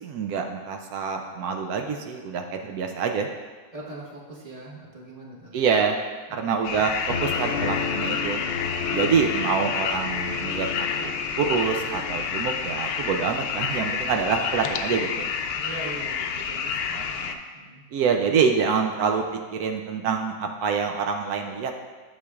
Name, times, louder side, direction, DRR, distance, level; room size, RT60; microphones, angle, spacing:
voice 1, 0.0-3.3 5.5-6.0 6.3-6.9 7.2-8.4 8.9-15.3 16.9-17.4 17.9-19.2 19.5-21.7, right 6 dB, 80° right, 3 dB, 1.1 m, -26 dB
voice 2, 3.7-5.6 6.3-6.4 15.6-17.0 17.5-17.9, right 2 dB, 25° right, -4 dB, 1.3 m, -41 dB
sound 1, 6.6-17.3, left 6 dB, 80° left, 1.1 m, -29 dB
sound 2, 7.1-14.1 14.5-15.0, left 5 dB, 60° left, 0.6 m, -34 dB
11.5 x 6.4 x 2.4 m, 1.4 s
omnidirectional pair, 1.6 m